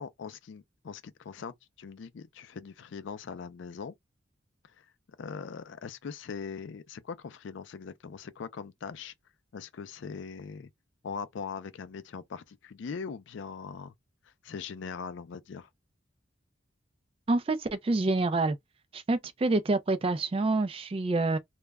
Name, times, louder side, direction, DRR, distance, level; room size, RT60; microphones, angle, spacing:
voice 1, 0.0-3.9 4.8-4.9 5.2-9.1 9.5-10.7 11.0-13.9 14.4-15.7, left 5 dB, 70° left, 0.4 m, -41 dB
voice 2, 17.3-18.6 18.9-21.4, right 2 dB, 30° right, 0.3 m, -27 dB
2.2 x 2.0 x 3.3 m
head